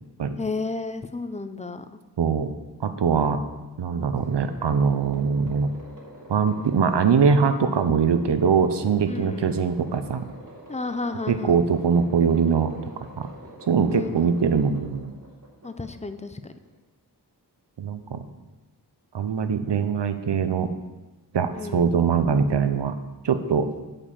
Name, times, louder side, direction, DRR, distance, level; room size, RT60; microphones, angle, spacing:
voice 1, 0.4-1.8 9.1-9.5 10.7-11.6 13.9-14.4 15.6-16.5 21.5-21.9, left 3 dB, 15° left, 10 dB, 0.5 m, -32 dB
voice 2, 2.2-2.5 2.8-3.4 3.8-5.7 6.3-10.2 11.3-12.8 13.2-13.3 13.7-15.1 17.8-18.2 19.1-20.7 21.3-22.9 23.2-23.7, right 6 dB, 90° right, 10 dB, 0.7 m, -22 dB
sound 1, 4.1-16.8, equal, 50° right, 3.3 m, -46 dB
8.3 x 5.3 x 7.5 m, 1.1 s
wide cardioid pair, 75°, 40 cm